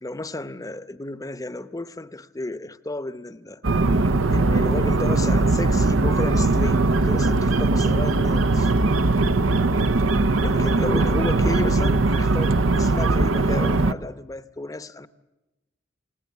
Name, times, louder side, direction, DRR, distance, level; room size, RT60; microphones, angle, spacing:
voice 1, 0.0-3.6 4.3-8.7 10.4-15.1, left 2 dB, 20° left, 0.8 m, -32 dB
sound 1, 3.6-13.9, right 2 dB, 80° right, 0.8 m, -20 dB
29.0 x 18.0 x 8.4 m
head